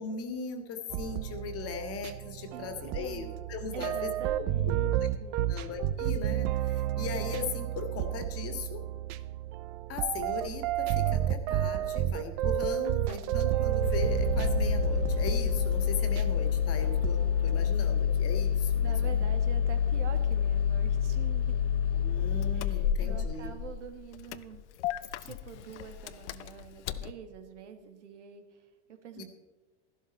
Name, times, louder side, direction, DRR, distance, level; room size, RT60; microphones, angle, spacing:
voice 1, 0.0-4.1 5.5-8.8 9.9-19.3 21.9-23.5 29.2-29.3, left 5 dB, 40° left, 7 dB, 1.9 m, -38 dB
sound 1, 0.9-17.7, right 12 dB, 50° right, 0.7 m, -31 dB
voice 2, 2.5-3.3 3.7-5.5 18.8-21.6 22.5-29.2, right 8 dB, 80° right, 7 dB, 1.7 m, -46 dB
Engine starting, 13.8-27.1, left 8 dB, 75° left, 0.7 m, -28 dB
13.0 x 12.0 x 4.2 m, 1.2 s
hypercardioid pair, 100°, 35 cm